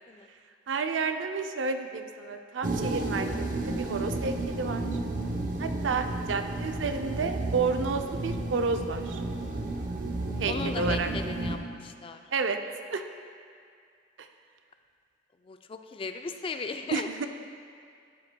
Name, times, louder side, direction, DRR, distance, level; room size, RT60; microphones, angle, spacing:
voice 1, 0.7-5.0 5.6-9.2 10.4-11.1 12.3-12.6 12.9-13.0 14.2-14.3 16.9-17.3, right 4 dB, 90° right, 6 dB, 0.5 m, -31 dB
sound 1, 2.6-11.6, right 2 dB, 45° right, 0.7 m, -32 dB
voice 2, 10.5-12.2 15.4-17.1, left 4 dB, 30° left, 7 dB, 0.3 m, -37 dB
12.0 x 7.8 x 2.2 m, 2.2 s
head